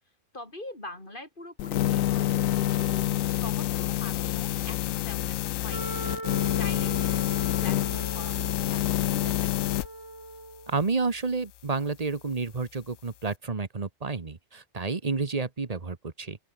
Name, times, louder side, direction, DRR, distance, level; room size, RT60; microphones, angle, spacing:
voice 1, 0.3-6.0 6.5-9.7, left 1 dB, 40° left, 6.1 m, -44 dB
sound 1, 1.6-9.9, left 13 dB, 80° left, 1.0 m, -27 dB
Wind instrument woodwind instrument, 5.7-10.8, right 2 dB, 55° right, 4.9 m, -40 dB
voice 2, 10.7-16.4, right 4 dB, 30° right, 1.3 m, -30 dB
open air
omnidirectional pair, 1.4 m